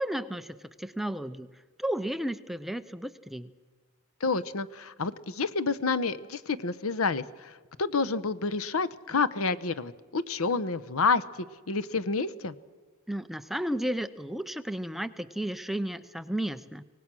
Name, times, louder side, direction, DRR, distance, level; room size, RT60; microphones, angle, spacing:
voice 1, 0.0-1.5 1.8-3.5 13.1-16.8, right 1 dB, ahead, 10 dB, 0.6 m, -33 dB
voice 2, 4.2-11.2 11.7-12.5, left 4 dB, 75° left, 16 dB, 0.9 m, -29 dB
24.5 x 19.0 x 6.2 m, 1.4 s
head